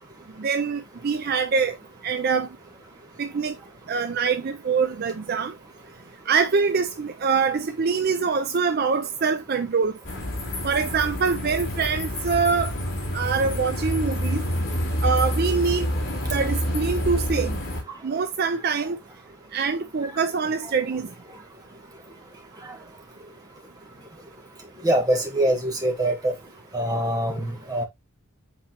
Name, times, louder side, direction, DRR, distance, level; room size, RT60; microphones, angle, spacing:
voice 1, 0.4-1.8 2.0-2.5 3.2-3.5 3.9-5.5 6.3-9.9 10.6-12.7 13.1-14.4 15.0-15.9 16.3-17.6 18.0-19.0 19.5-21.1, right 5 dB, 45° right, 0.4 m, -24 dB
sound 1, 10.0-17.8, equal, 65° left, 2.8 m, -27 dB
voice 2, 24.8-26.3 26.7-27.8, right 1 dB, 15° right, 1.4 m, -23 dB
8.0 x 4.1 x 2.9 m
head